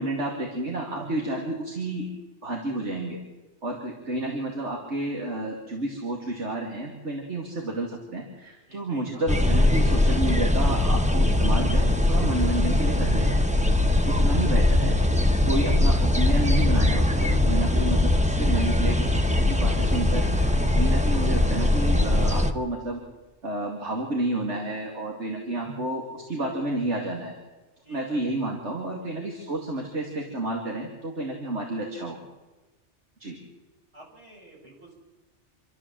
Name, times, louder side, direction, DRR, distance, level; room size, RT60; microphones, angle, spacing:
voice 1, 0.0-2.1 2.4-3.2 3.6-13.3 14.2-14.9 15.5-23.0 23.4-27.4 27.9-32.2 33.2-33.4, right 1 dB, 75° right, 0 dB, 2.7 m, -30 dB
voice 2, 8.7-9.3 27.8-28.2 33.9-35.0, right 2 dB, 60° right, -3 dB, 7.1 m, -50 dB
sound 1, 9.3-22.5, left 1 dB, 5° right, 1.0 m, -21 dB
27.0 x 13.0 x 7.6 m, 1.2 s
omnidirectional pair, 1.2 m